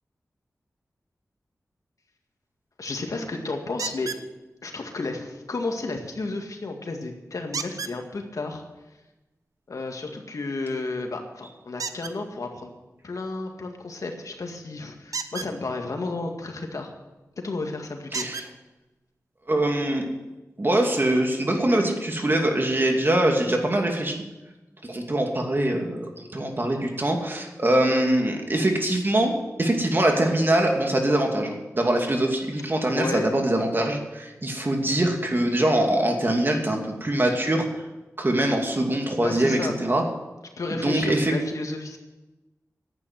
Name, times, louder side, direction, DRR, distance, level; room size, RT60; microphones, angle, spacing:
voice 1, 2.8-4.1 4.6-8.6 9.7-12.7 13.0-16.9 17.4-18.3 32.9-33.3 39.2-39.8 40.6-42.0, left 3 dB, 70° left, 3 dB, 2.0 m, -32 dB
sound 1, 3.8-4.3 7.5-8.0 11.8-12.1 15.1-15.5 17.2-17.3 18.1-18.5 19.5-19.6 20.1-20.2, right 5 dB, 85° right, 0.8 m, -32 dB
voice 2, 18.1-18.5 19.5-20.0 20.6-24.2 24.8-37.7 38.2-40.0 40.8-41.3, right 1 dB, 40° right, 3 dB, 2.5 m, -23 dB
11.0 x 8.8 x 9.2 m, 1.1 s
wide cardioid pair, 60°, 6 cm